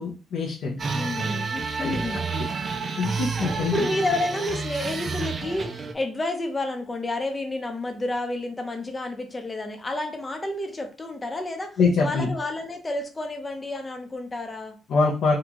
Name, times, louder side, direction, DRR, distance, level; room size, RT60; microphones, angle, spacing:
voice 1, 0.0-0.8 1.8-2.0 2.3-2.5 3.0-3.8 11.8-12.3 14.9-15.3, left 4 dB, 65° left, -1 dB, 0.7 m, -24 dB
sound 1, 0.8-5.9, right 4 dB, 40° right, 0.5 m, -30 dB
voice 2, 0.9-2.2 3.6-14.8, left 2 dB, 20° left, 5 dB, 0.7 m, -30 dB
3.7 x 2.3 x 2.9 m, 0.36 s
cardioid pair, 110°, 0 cm